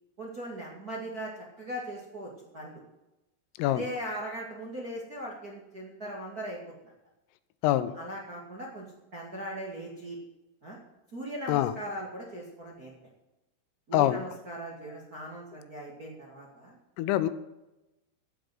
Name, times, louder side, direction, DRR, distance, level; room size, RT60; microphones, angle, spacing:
voice 1, 0.2-2.8 3.6-6.6 7.9-8.9 9.1-10.2 10.6-10.8 11.1-12.9 13.9-16.7, right 1 dB, 60° right, -2 dB, 0.9 m, -39 dB
voice 2, 17.0-17.3, left 13 dB, 85° left, 12 dB, 3.4 m, -24 dB
15.5 x 6.4 x 7.8 m, 0.97 s
omnidirectional pair, 5.9 m